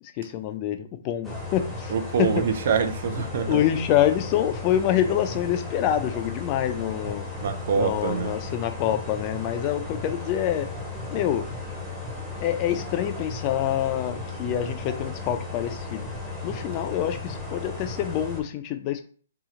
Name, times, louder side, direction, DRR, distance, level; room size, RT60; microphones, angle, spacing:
voice 1, 0.0-1.9 2.2-2.4 3.4-7.3 7.7-10.7 11.1-11.4 12.4-16.1 16.4-19.0, left 11 dB, 30° left, 0.3 m, -26 dB
sound 1, 1.2-18.4, left 3 dB, ahead, 0.7 m, -35 dB
voice 2, 1.9-3.6 7.4-8.4, right 6 dB, 55° right, 0.4 m, -25 dB
2.8 x 2.0 x 3.7 m
hypercardioid pair, 150°, 0 cm